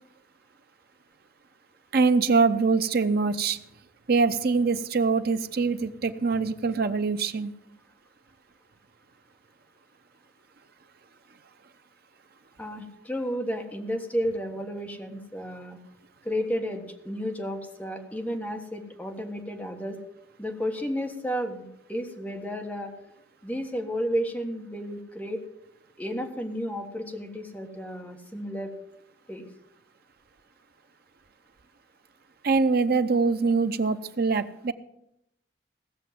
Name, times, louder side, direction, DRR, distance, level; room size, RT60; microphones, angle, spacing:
voice 1, 1.9-3.6 4.1-7.5 32.4-34.7, right 4 dB, 55° right, 10 dB, 0.7 m, -23 dB
voice 2, 12.6-15.8 16.2-20.0 20.4-22.9 23.4-25.4 26.0-28.7 29.3-29.5, equal, 10° left, 2 dB, 1.6 m, -32 dB
17.0 x 6.6 x 7.7 m, 0.79 s
head